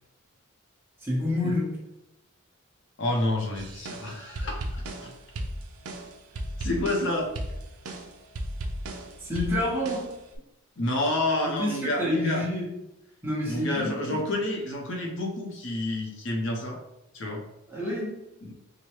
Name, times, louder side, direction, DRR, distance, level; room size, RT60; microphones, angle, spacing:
voice 1, 1.0-1.8 9.2-10.1 11.4-12.7 13.2-14.2 17.7-18.3, left 1 dB, 10° right, -6 dB, 1.0 m, -28 dB
voice 2, 3.0-5.1 6.6-7.3 10.8-12.4 13.5-16.8 17.1-17.4 18.4-18.5, left 1 dB, 55° left, 0 dB, 0.7 m, -29 dB
sound 1, 3.5-10.4, right 1 dB, 80° right, 0.5 m, -36 dB
4.6 x 2.2 x 3.0 m, 0.90 s
head